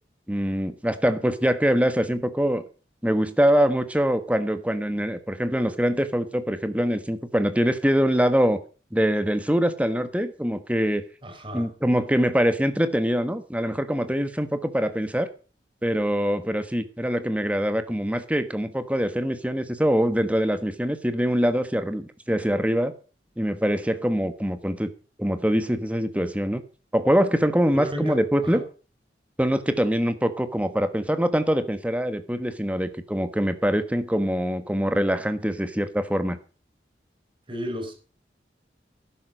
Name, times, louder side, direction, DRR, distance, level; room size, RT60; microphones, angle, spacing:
voice 1, 0.3-2.6 3.0-8.6 8.9-11.0 11.5-15.3 15.8-22.9 23.4-24.9 25.2-26.6 26.9-28.6 29.4-36.4, equal, 10° right, 1.3 m, -24 dB
voice 2, 11.2-11.7 27.7-28.6 37.5-37.9, equal, 30° right, 3.9 m, -33 dB
12.0 x 10.5 x 6.4 m
head